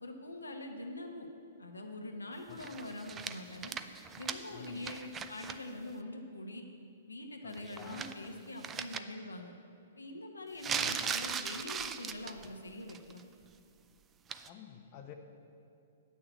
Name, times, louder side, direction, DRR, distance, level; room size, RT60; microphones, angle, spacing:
voice 1, 0.0-1.3 1.6-3.7 4.2-6.6 7.1-9.5 10.0-13.2, left 1 dB, 90° left, 3 dB, 1.2 m, -44 dB
sound 1, 2.6-5.6 5.9-6.0 7.5-8.3 8.6-9.0 10.6-12.5 12.9-13.2 14.3-14.5, right 7 dB, 20° right, 0.4 m, -38 dB
voice 2, 4.5-4.9 7.4-8.1 10.7-11.0 14.5-15.1, left 9 dB, 40° left, 4 dB, 0.8 m, -50 dB
8.8 x 6.5 x 8.1 m, 2.5 s
figure-of-eight pair, 120°, 0 cm